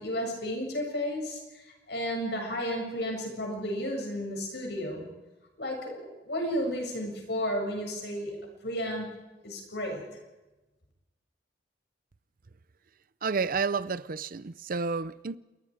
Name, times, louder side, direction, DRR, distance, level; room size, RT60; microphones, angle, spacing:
voice 1, 0.0-5.1 5.6-8.4 8.6-9.1 9.4-10.1, equal, 65° left, 7.3 m, -33 dB
voice 2, 13.2-15.4, right 4 dB, 50° right, 0.6 m, -30 dB
28.0 x 21.5 x 5.1 m
head